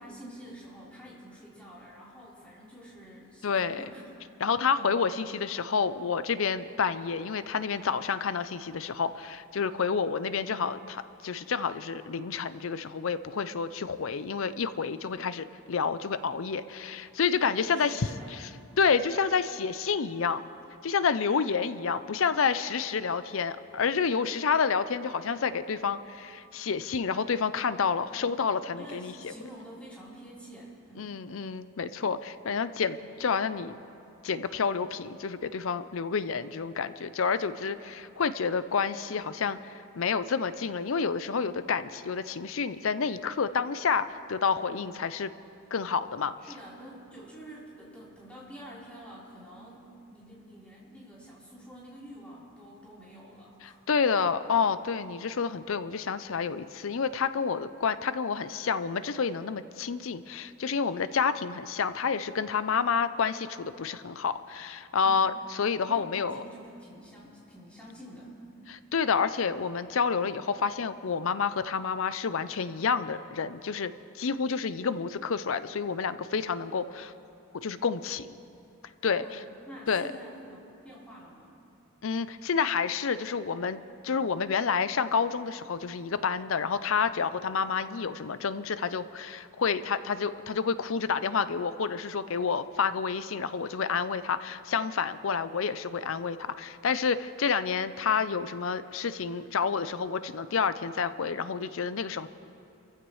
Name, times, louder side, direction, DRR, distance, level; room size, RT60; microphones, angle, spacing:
voice 1, 0.0-4.3 4.7-5.0 17.3-18.3 28.2-28.4 28.7-31.2 32.8-33.0 37.3-37.6 46.4-53.8 65.0-65.3 65.8-68.3 79.2-81.5, equal, 5° left, -8 dB, 4.0 m, -48 dB
voice 2, 3.4-3.8 4.4-18.0 18.8-20.4 20.8-29.3 31.0-33.0 33.2-33.8 34.2-45.3 45.7-46.3 53.6-65.3 65.6-66.4 68.7-77.1 77.6-78.4 79.0-79.4 79.9-80.1 82.0-102.3, left 6 dB, 65° left, 13 dB, 0.5 m, -29 dB
30.0 x 15.0 x 3.2 m, 2.8 s
head